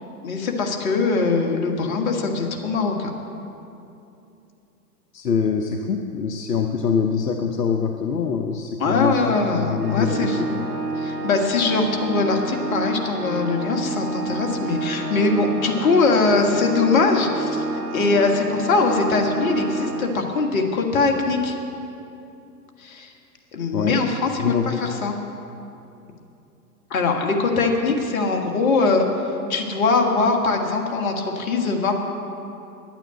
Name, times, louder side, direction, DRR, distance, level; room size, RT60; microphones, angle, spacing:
voice 1, 0.2-3.1 8.8-10.6 11.0-17.6 17.9-21.6 22.8-23.1 23.5-25.2 26.9-31.9, left 3 dB, 60° left, 2 dB, 1.9 m, -22 dB
voice 2, 5.1-10.5 23.7-24.0 24.4-24.8, left 6 dB, 85° left, 5 dB, 0.8 m, -24 dB
Organ, 9.8-20.6, right 3 dB, 70° right, 2.2 m, -29 dB
10.5 x 9.0 x 8.1 m, 2.7 s
figure-of-eight pair, 110°, 47 cm